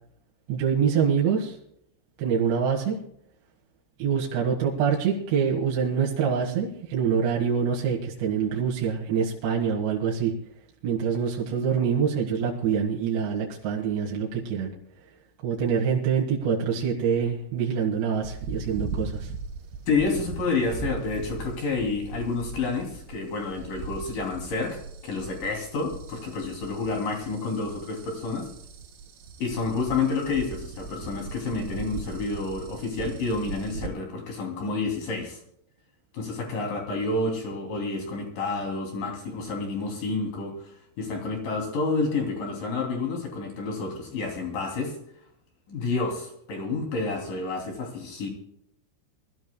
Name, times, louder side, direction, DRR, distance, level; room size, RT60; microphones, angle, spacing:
voice 1, 0.5-1.6 2.2-3.0 4.0-10.3 10.8-14.7 15.4-19.3, right 7 dB, 65° right, -2 dB, 3.5 m, -25 dB
sound 1, 18.2-33.9, right 4 dB, 85° right, 4.8 m, -39 dB
voice 2, 19.9-28.5 29.4-35.4 36.1-45.0 45.7-48.3, left 3 dB, 45° left, 1 dB, 4.0 m, -29 dB
23.0 x 14.0 x 2.2 m, 0.74 s
omnidirectional pair, 5.9 m